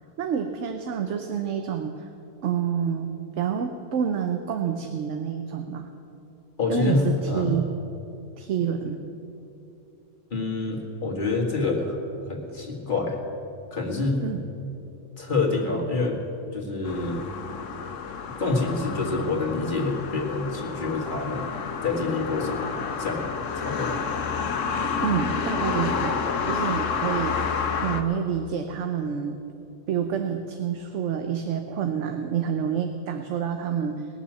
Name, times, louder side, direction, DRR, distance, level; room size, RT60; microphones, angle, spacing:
voice 1, 0.2-2.1 2.4-5.9 6.7-7.7 8.4-9.0 14.2-14.4 25.0-29.4 29.9-34.1, right 8 dB, 75° right, 6 dB, 1.1 m, -28 dB
voice 2, 6.6-7.5 10.3-12.0 12.3-13.2 13.7-14.3 15.2-16.2 16.5-17.2 18.4-21.5 21.8-24.0, left 3 dB, 40° left, -1 dB, 2.1 m, -27 dB
sound 1, 16.8-28.0, left 5 dB, 85° left, 1.3 m, -29 dB
20.0 x 7.1 x 7.5 m, 2.8 s
omnidirectional pair, 1.3 m